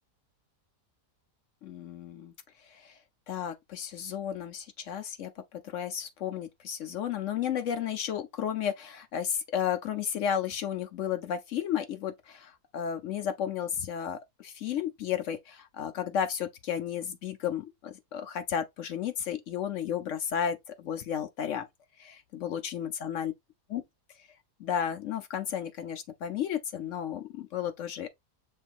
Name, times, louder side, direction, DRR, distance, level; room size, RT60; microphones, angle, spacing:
voice 1, 1.6-2.3 2.7-2.9 3.3-21.6 22.0-23.3 23.7-23.8 24.6-28.1, left 9 dB, 65° left, 0.8 m, -33 dB
6.3 x 3.3 x 2.4 m
omnidirectional pair, 1.7 m